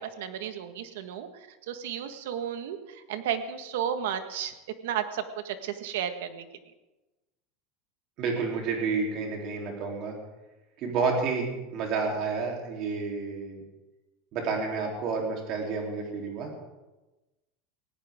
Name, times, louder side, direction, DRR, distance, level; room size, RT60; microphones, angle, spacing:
voice 1, 0.2-1.3 1.7-2.8 3.1-4.5 4.8-6.4, right 9 dB, 75° right, 9 dB, 1.5 m, -33 dB
voice 2, 8.2-10.2 10.8-13.6 14.3-16.5, right 4 dB, 35° right, 0 dB, 3.3 m, -30 dB
19.0 x 17.0 x 3.7 m, 1.1 s
supercardioid pair, 180°, 0 cm